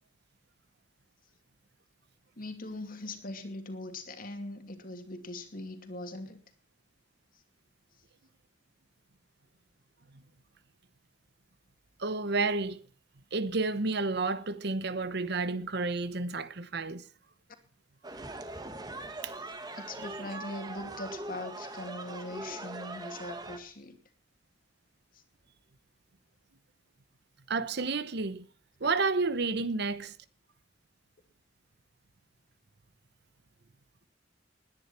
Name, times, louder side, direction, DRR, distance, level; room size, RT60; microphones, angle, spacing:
voice 1, 2.4-6.4 19.4-19.5 19.7-24.0 25.1-25.2, left 2 dB, 50° left, 2.6 m, -41 dB
voice 2, 12.0-12.8 13.3-17.0 19.2-19.3 27.5-28.5 28.8-30.1, right 3 dB, 60° right, 1.0 m, -30 dB
sound 1, 18.0-23.6, right 2 dB, 20° right, 1.7 m, -41 dB
20.0 x 10.5 x 4.4 m
head